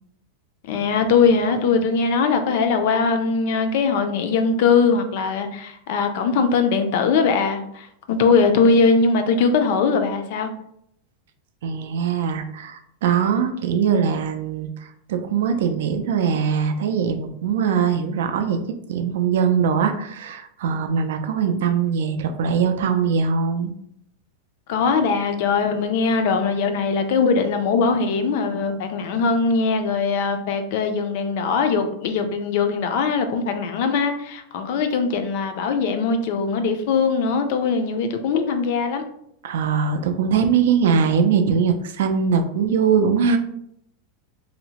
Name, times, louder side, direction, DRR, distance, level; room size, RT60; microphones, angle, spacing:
voice 1, 0.6-10.5 24.7-39.0, left 5 dB, 55° left, 7 dB, 0.3 m, -21 dB
voice 2, 11.6-23.7 39.4-43.4, right 6 dB, 75° right, 7 dB, 0.3 m, -21 dB
2.7 x 2.0 x 2.8 m, 0.73 s
supercardioid pair, 165°, 0 cm